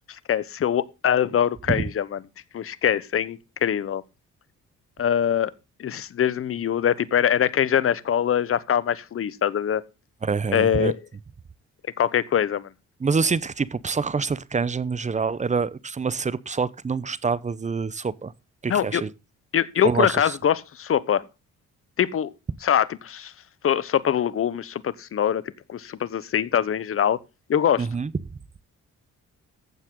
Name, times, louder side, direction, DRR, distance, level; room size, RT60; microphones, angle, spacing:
voice 1, 0.1-2.2 2.5-4.0 5.0-5.5 5.8-9.8 10.5-11.0 12.0-12.7 18.7-19.0 19.5-21.2 22.0-22.3 22.6-23.3 23.6-25.4 25.7-27.2 27.5-27.9, left 9 dB, 45° left, 0.9 m, -23 dB
voice 2, 10.2-10.9 13.0-18.3 18.6-19.1 19.8-20.4 27.8-28.3, right 5 dB, 25° right, 0.8 m, -26 dB
15.0 x 7.4 x 3.8 m
cardioid pair, 90°, 30 cm